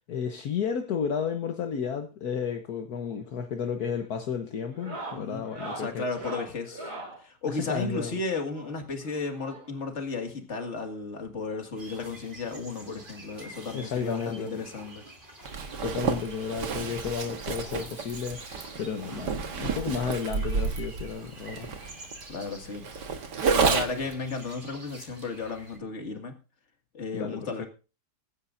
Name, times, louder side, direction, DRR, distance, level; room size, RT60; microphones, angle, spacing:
voice 1, 0.0-6.0 7.4-8.2 13.7-14.6 15.8-22.0 27.1-27.5, left 6 dB, 65° left, 1.5 m, -32 dB
sound 1, 3.1-3.5 3.8-4.1 4.7-7.2 8.5-9.9 10.9-11.0 11.2-11.4 11.8-11.9 13.2-13.3 14.6-14.7, right 2 dB, 65° right, 4.0 m, -41 dB
voice 2, 5.2-6.9 7.2-15.0 22.3-22.9 23.5-26.4 26.9-27.7, left 3 dB, 45° left, 2.2 m, -34 dB
sound 2, 11.8-25.8, right 1 dB, 30° right, 3.0 m, -48 dB
Zipper (clothing), 15.4-24.1, right 5 dB, 90° right, 2.0 m, -30 dB
22.5 x 10.0 x 2.6 m
omnidirectional pair, 1.8 m